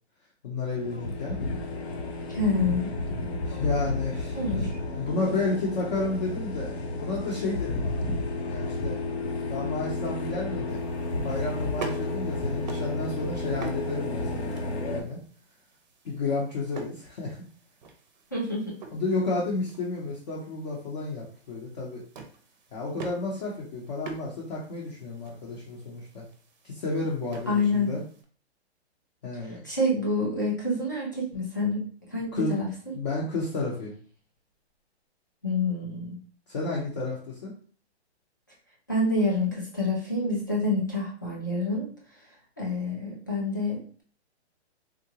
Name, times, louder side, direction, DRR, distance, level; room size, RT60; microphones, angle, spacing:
voice 1, 0.4-1.4 3.4-4.7 4.9-7.8 8.5-9.0 9.5-10.8 11.2-15.2 16.0-17.4 18.9-22.0 22.7-26.2 26.6-28.0 29.2-29.6 32.3-32.5 32.9-33.9 36.5-37.5, left 3 dB, 35° left, -5 dB, 0.7 m, -31 dB
sound 1, 0.7-15.0, left 2 dB, 70° left, 0.7 m, -32 dB
voice 2, 2.3-2.9 4.3-4.7 18.3-18.8 27.5-27.9 29.6-31.8 32.1-32.7 35.4-36.2 38.9-41.9 42.6-44.0, left 2 dB, 20° left, -4 dB, 0.3 m, -27 dB
sound 2, 10.7-28.2, right 4 dB, 40° right, 0.6 m, -46 dB
3.7 x 2.2 x 2.8 m, 0.43 s
hypercardioid pair, 165°, 34 cm